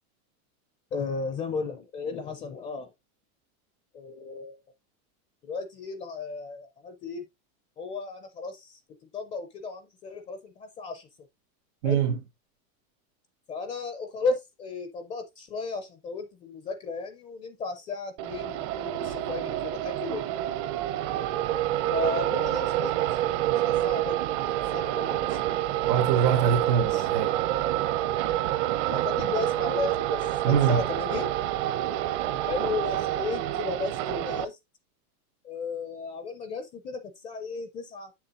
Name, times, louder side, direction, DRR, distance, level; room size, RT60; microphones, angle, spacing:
voice 1, 0.9-2.9 3.9-4.6 5.4-7.2 7.8-11.1 11.8-12.0 13.5-20.3 21.9-23.2 23.6-24.3 24.7-25.4 26.8-27.1 28.9-31.3 32.5-34.6 35.4-38.1, left 4 dB, 15° left, 0.4 m, -34 dB
voice 2, 11.8-12.2 25.9-27.4 30.4-30.8, right 8 dB, 85° right, 1.8 m, -24 dB
sound 1, 18.2-34.4, right 13 dB, 55° right, 0.8 m, -28 dB
7.2 x 7.0 x 2.5 m
supercardioid pair, 160°, 44 cm